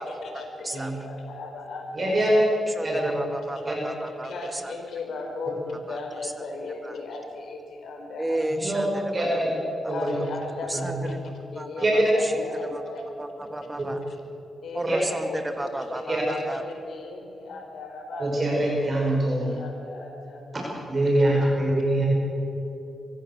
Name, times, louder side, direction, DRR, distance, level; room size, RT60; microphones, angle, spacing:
voice 1, 0.0-2.3 4.2-8.7 9.9-13.1 14.1-14.2 14.6-15.4 16.0-19.0 19.4-20.5 21.3-21.4, left 3 dB, 75° left, 3 dB, 4.5 m, -37 dB
voice 2, 2.0-2.3 2.8-3.1 3.7-3.8 8.5-9.5 9.9-10.2 10.7-11.0 11.8-12.1 14.9-15.0 16.1-16.2 18.2-19.5 20.9-22.1, right 1 dB, 40° right, -3 dB, 5.7 m, -24 dB
voice 3, 2.7-4.7 5.9-6.3 6.8-7.0 8.2-8.9 9.2-9.3 9.8-9.9 10.7-11.2 11.6-12.4 12.7-12.8 13.2-14.0 14.7-16.6, right 1 dB, 20° right, 6 dB, 2.3 m, -33 dB
24.5 x 15.5 x 7.4 m, 3.0 s
cardioid pair, 80°, 0 cm